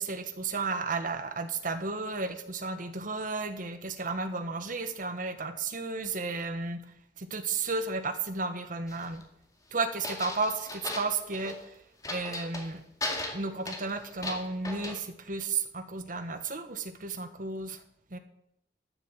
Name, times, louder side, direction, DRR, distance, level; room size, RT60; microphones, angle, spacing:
voice 1, 0.0-6.8 7.2-9.2 9.7-11.6 12.1-12.8 13.3-17.8 18.1-18.2, right 3 dB, 50° right, 9 dB, 1.3 m, -33 dB
sound 1, 8.9-9.2 10.0-11.6 12.0-12.7 13.0-14.9, left 2 dB, 20° left, 2.2 m, -37 dB
12.5 x 7.2 x 7.9 m, 0.76 s
head